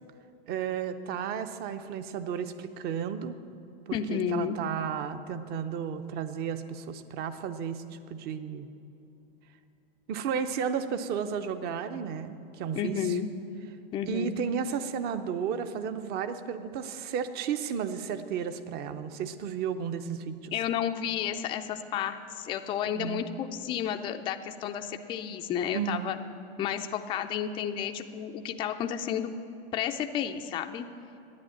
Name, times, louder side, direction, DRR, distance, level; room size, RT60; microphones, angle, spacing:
voice 1, 0.5-3.4 3.9-8.7 10.1-12.9 14.0-20.5 23.0-23.3 25.7-26.1, right 7 dB, 30° right, 11 dB, 0.7 m, -33 dB
voice 2, 3.9-4.6 12.7-13.3 13.9-14.3 20.5-26.2 26.6-29.3 29.7-30.9, left 8 dB, 15° left, 6 dB, 0.4 m, -31 dB
10.5 x 8.9 x 8.8 m, 2.8 s
hypercardioid pair, 135°, 32 cm